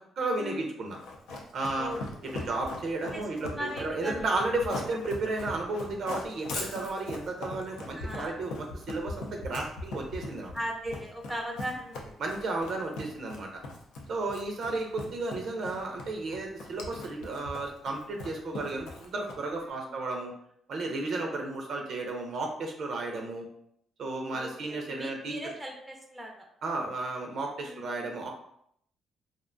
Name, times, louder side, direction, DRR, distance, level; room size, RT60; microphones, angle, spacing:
voice 1, 0.2-1.0 1.5-1.9 2.5-3.5 3.8-10.5 12.2-13.5 14.1-20.3 20.7-23.5 24.0-25.4 26.6-28.3, right 2 dB, 65° right, 1 dB, 0.4 m, -33 dB
Run, 0.9-19.6, left 2 dB, 90° left, 0.4 m, -40 dB
voice 2, 3.1-4.2 7.9-8.5 10.5-12.2 19.6-19.9 21.1-21.5 24.3-26.5 27.6-28.0, equal, 5° right, 0 dB, 0.4 m, -39 dB
2.5 x 2.1 x 2.5 m, 0.70 s
cardioid pair, 90°, 0 cm